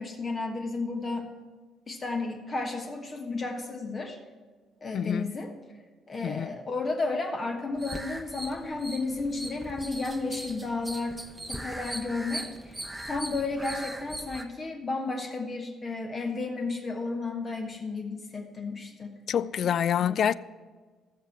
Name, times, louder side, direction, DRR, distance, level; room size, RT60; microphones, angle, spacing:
voice 1, 0.0-1.3 1.9-4.2 4.8-5.5 6.1-11.2 11.5-12.8 13.1-19.1 20.0-20.2, left 3 dB, 35° left, 1.2 m, -33 dB
voice 2, 4.9-5.3 6.2-6.5 19.3-20.3, left 9 dB, 55° left, 0.3 m, -26 dB
sound 1, 7.8-14.5, right 1 dB, 10° right, 0.8 m, -40 dB
13.0 x 7.2 x 6.0 m
figure-of-eight pair, 45°, 0 cm